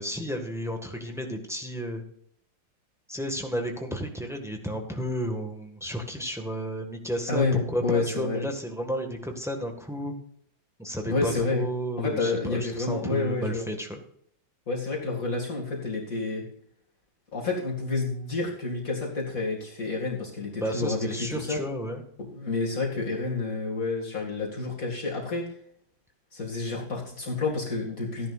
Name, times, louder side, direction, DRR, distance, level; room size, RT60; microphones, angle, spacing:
voice 1, 0.0-2.0 3.1-10.1 10.8-14.0 20.6-22.0, equal, ahead, 3 dB, 1.4 m, -32 dB
voice 2, 7.3-8.4 11.0-11.7 12.0-13.6 14.7-16.4 17.3-21.6 22.3-25.4 26.3-28.3, left 3 dB, 45° left, -1 dB, 2.5 m, -29 dB
15.5 x 10.5 x 2.5 m, 0.66 s
omnidirectional pair, 2.1 m